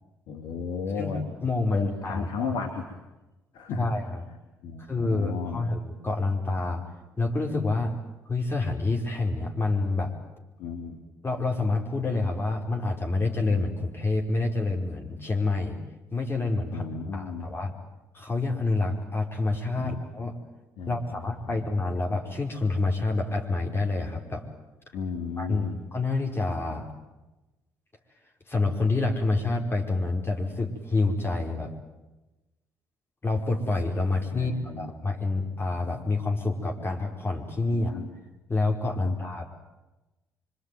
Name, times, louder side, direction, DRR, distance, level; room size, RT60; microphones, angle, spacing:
voice 1, 0.3-1.2 1.7-2.9 3.5-3.9 4.6-5.7 10.6-11.0 16.7-17.5 19.7-20.0 20.8-21.6 24.9-25.8 34.3-34.9 37.7-38.1 39.0-39.2, left 5 dB, 70° left, 4 dB, 2.7 m, -34 dB
voice 2, 1.0-2.5 3.8-4.2 4.9-6.9 7.2-8.0 8.3-10.1 11.2-15.8 16.1-17.7 18.1-20.3 20.9-24.4 25.4-26.9 28.5-31.7 33.2-38.0 38.5-39.5, left 3 dB, 30° left, 1 dB, 4.9 m, -28 dB
25.5 x 24.5 x 9.4 m, 1.1 s
hypercardioid pair, 50°, 8 cm